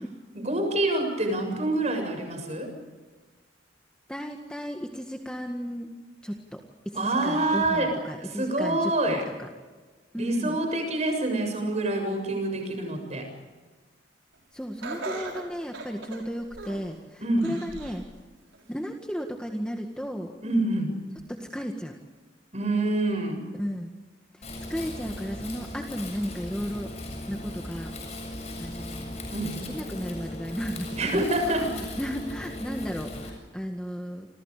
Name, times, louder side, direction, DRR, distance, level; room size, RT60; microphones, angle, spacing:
voice 1, 0.3-2.7 6.9-7.9 8.2-9.2 10.2-13.3 17.2-17.5 20.4-20.9 22.5-23.5 29.3-29.6 31.0-31.9, right 2 dB, 35° right, 4 dB, 7.3 m, -26 dB
voice 2, 4.1-5.9 6.2-9.5 10.1-10.6 14.5-18.1 18.7-20.3 21.3-22.0 23.6-23.9 24.7-26.9 27.3-27.9 28.6-29.2 29.7-34.3, equal, 5° left, 2 dB, 1.8 m, -34 dB
Laughter, 14.8-16.9 17.4-18.0 18.5-18.6 19.6-19.7, right 3 dB, 85° right, 6.3 m, -38 dB
Wind, 24.4-33.3, left 1 dB, 35° left, 7.4 m, -38 dB
29.5 x 27.0 x 5.1 m, 1.3 s
head